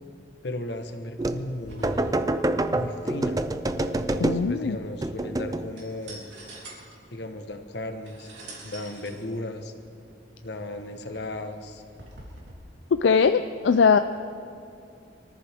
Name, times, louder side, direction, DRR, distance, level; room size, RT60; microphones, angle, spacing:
voice 1, 0.4-2.3 2.7-3.4 4.0-6.3 7.1-8.3 8.6-9.7 10.4-11.8, left 1 dB, 65° left, 6 dB, 1.2 m, -36 dB
sound 1, 1.2-1.5 1.8-4.6 5.0-5.7, right 1 dB, 20° right, 0.5 m, -27 dB
sound 2, 1.6-12.5, right 1 dB, 75° right, 3.6 m, -47 dB
voice 2, 4.2-4.8 12.9-14.0, left 5 dB, 85° left, 10 dB, 0.4 m, -20 dB
24.5 x 14.0 x 3.6 m, 2.5 s
head